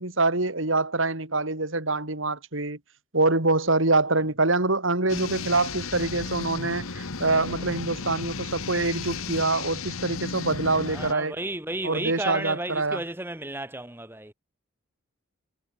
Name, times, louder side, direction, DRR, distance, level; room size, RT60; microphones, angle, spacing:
voice 1, 0.0-2.8 3.1-11.3 11.8-13.0, right 2 dB, 70° right, 3.3 m, -25 dB
sound 1, 5.1-11.1, left 4 dB, 90° left, 1.4 m, -34 dB
voice 2, 10.9-14.3, right 1 dB, 10° right, 1.6 m, -33 dB
head